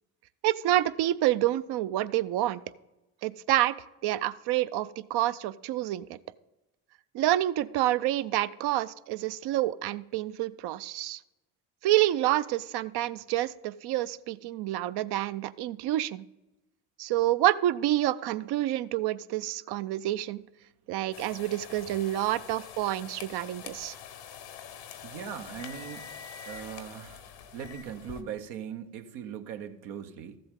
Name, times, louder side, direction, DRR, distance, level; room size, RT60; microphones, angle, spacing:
voice 1, 0.4-2.6 3.2-3.7 4.0-6.2 7.1-11.2 11.8-16.2 17.0-20.4 20.9-23.9, right 14 dB, 65° right, 16 dB, 0.6 m, -28 dB
sound 1, 21.1-28.2, left 7 dB, 85° left, 1.1 m, -45 dB
voice 2, 25.0-26.1 26.5-27.3 27.5-30.4, right 8 dB, 80° right, 7 dB, 0.9 m, -40 dB
14.0 x 7.7 x 3.7 m, 0.99 s
hypercardioid pair, 55°, 42 cm